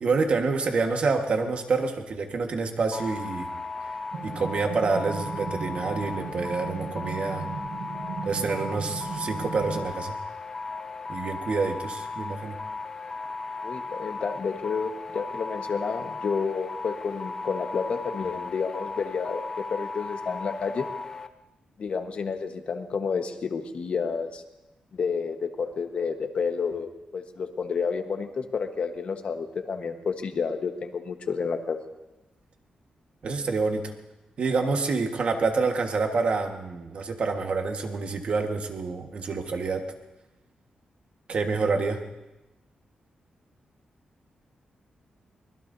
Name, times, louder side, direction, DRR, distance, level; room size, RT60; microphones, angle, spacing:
voice 1, 0.0-3.5 4.2-7.5 8.2-10.1 11.1-12.6 33.2-33.9 34.4-39.8 41.3-42.0, right 4 dB, 50° right, 4 dB, 1.5 m, -27 dB
sound 1, 2.9-21.3, left 3 dB, 25° left, 0.7 m, -36 dB
sound 2, 4.1-9.9, right 5 dB, 70° right, 1.0 m, -37 dB
voice 2, 13.6-20.9 21.8-24.4 24.9-31.8, left 5 dB, 50° left, 6 dB, 1.2 m, -30 dB
24.0 x 21.0 x 2.7 m, 1.0 s
wide cardioid pair, 160°, 3 cm